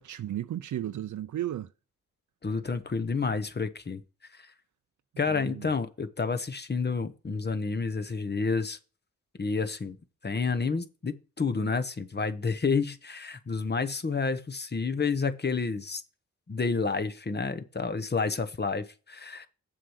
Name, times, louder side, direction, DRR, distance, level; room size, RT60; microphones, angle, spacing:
voice 1, 0.0-1.7 5.3-5.7, right 12 dB, 85° right, 0.5 m, -34 dB
voice 2, 2.4-4.0 4.3-4.5 5.2-8.8 9.4-10.0 10.2-16.0 16.5-19.5, left 4 dB, 35° left, 1.0 m, -30 dB
7.5 x 5.6 x 6.4 m
cardioid pair, 70°, 29 cm